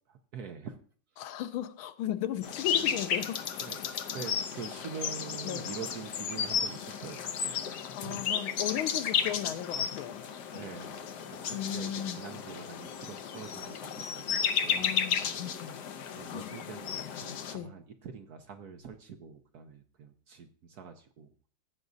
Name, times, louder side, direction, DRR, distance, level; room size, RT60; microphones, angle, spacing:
voice 1, 0.3-0.8 2.8-3.0 3.6-3.8 4.1-7.2 7.4-8.3 9.3-9.4 10.5-11.1 11.5-15.0 16.2-21.5, right 6 dB, 65° right, 1.0 m, -45 dB
voice 2, 1.2-3.6 5.4-5.7 7.9-10.2 11.5-12.2 14.8-15.4 16.3-16.5 17.5-17.7, left 11 dB, 90° left, 1.5 m, -36 dB
sound 1, 2.4-17.5, left 7 dB, 65° left, 1.2 m, -33 dB
16.0 x 8.0 x 2.6 m
omnidirectional pair, 2.3 m